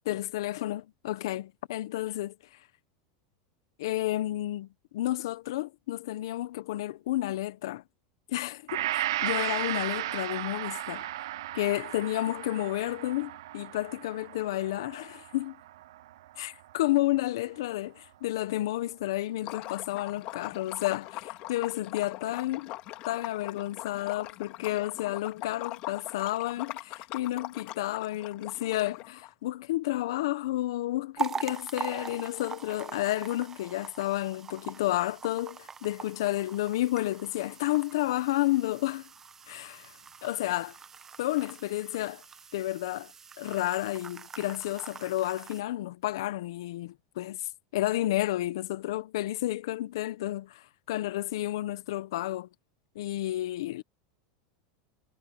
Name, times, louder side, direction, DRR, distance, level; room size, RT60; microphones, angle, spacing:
voice 1, 0.1-2.3 3.8-7.8 8.3-11.0 11.5-15.6 16.4-22.7 23.0-39.1 39.5-39.9 40.2-40.7 41.2-42.2 42.5-43.1 43.4-52.5 52.9-53.8, left 15 dB, 80° left, 1.0 m, -31 dB
Gong, 8.7-17.0 17.4-17.5, right 15 dB, 85° right, 0.5 m, -35 dB
Liquid, 19.4-29.3, left 17 dB, 45° left, 1.7 m, -41 dB
sound 1, 31.2-45.6, right 6 dB, 15° right, 0.7 m, -42 dB
supercardioid pair, 145°, 2 cm